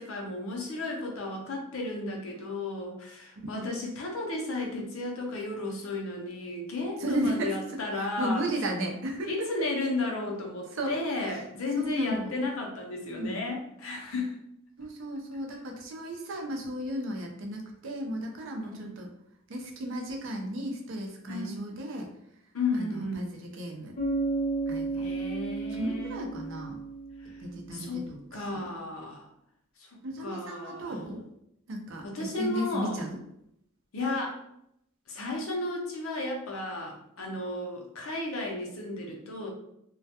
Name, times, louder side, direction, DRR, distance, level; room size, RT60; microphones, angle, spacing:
voice 1, 0.0-8.5 9.2-14.3 18.6-18.9 21.3-21.6 22.5-23.3 25.0-26.2 27.2-27.3 27.7-28.0 28.3-29.3 29.8-31.0 32.0-33.0 33.9-34.4 35.1-39.5, left 2 dB, 75° left, 0 dB, 0.6 m, -34 dB
voice 2, 3.4-3.7 7.0-7.6 7.9-9.5 10.7-11.4 11.7-12.3 13.2-13.4 14.8-19.1 19.5-22.1 22.7-23.9 24.7-25.1 25.8-26.8 27.4-28.2 28.5-28.7 30.0-31.2 31.7-33.2, right 1 dB, 65° right, 1 dB, 0.5 m, -34 dB
Bass guitar, 24.0-27.8, right 3 dB, 30° left, 0.7 m, -33 dB
2.2 x 2.1 x 2.7 m, 0.78 s
head